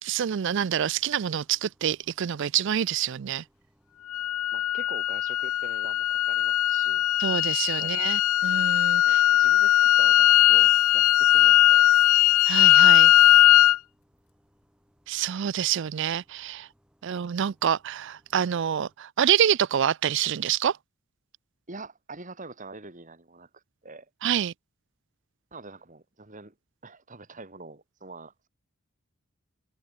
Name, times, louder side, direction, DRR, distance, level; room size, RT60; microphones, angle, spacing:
voice 1, 0.0-3.4 7.2-9.2 12.5-13.1 15.1-16.7 17.0-20.8 24.2-24.5, right 9 dB, 60° right, 0.4 m, -27 dB
sound 1, 0.9-19.0, equal, 5° right, 7.1 m, -67 dB
sound 2, 4.1-13.8, left 13 dB, 80° left, 0.3 m, -19 dB
voice 2, 4.5-7.0 7.8-8.0 9.0-11.8 12.7-13.1 21.7-24.1 25.5-26.5 26.8-28.5, right 3 dB, 35° right, 3.0 m, -45 dB
head